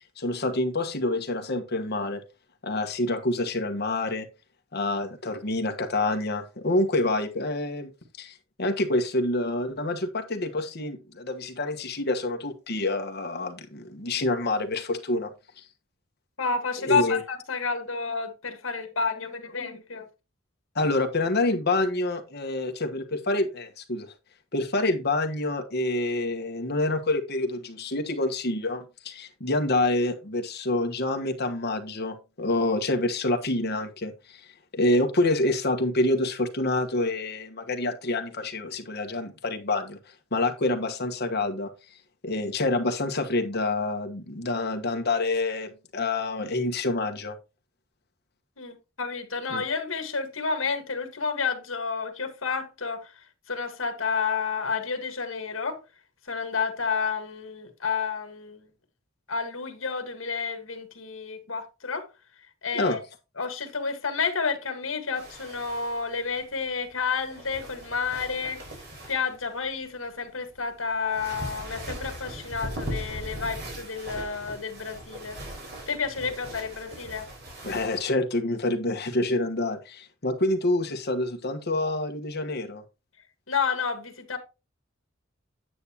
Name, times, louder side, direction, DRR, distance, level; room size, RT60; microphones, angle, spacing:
voice 1, 0.2-2.2 2.6-4.3 4.7-7.9 8.2-15.6 16.8-17.2 20.7-24.1 24.5-34.4 34.7-40.0 40.3-41.7 42.2-47.3 49.5-49.6 62.7-63.0 77.6-82.8, left 2 dB, 55° left, 1.4 m, -27 dB
voice 2, 16.4-20.1 48.6-53.1 53.5-55.8 56.3-58.7 59.3-62.1 62.6-63.0 63.4-68.6 69.1-75.4 75.9-77.3 83.5-84.4, left 5 dB, 80° left, 1.7 m, -30 dB
sound 1, 65.1-78.1, right 1 dB, 55° right, 3.9 m, -40 dB
9.4 x 8.3 x 2.9 m
head